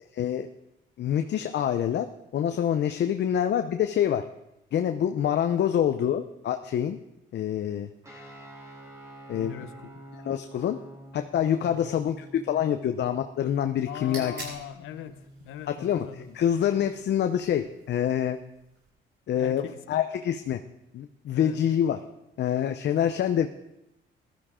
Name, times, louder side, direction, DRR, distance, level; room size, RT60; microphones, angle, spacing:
voice 1, 0.1-0.5 1.0-2.1 2.3-4.3 4.7-7.0 7.3-7.9 9.3-9.5 10.2-10.8 11.1-14.3 15.7-16.1 16.3-18.4 19.3-20.6 20.9-22.0 22.4-23.5, left 9 dB, 60° left, 7 dB, 0.6 m, -26 dB
sound 1, 8.0-17.0, right 1 dB, 15° right, 3.2 m, -48 dB
voice 2, 9.3-9.9 11.6-11.9 13.9-16.4 19.3-20.0 21.3-21.6 23.0-23.3, left 10 dB, 85° left, 11 dB, 0.9 m, -41 dB
sound 2, 13.7-18.9, right 2 dB, 65° right, 5.2 m, -48 dB
15.0 x 12.5 x 3.7 m, 0.87 s
cardioid pair, 90°, 20 cm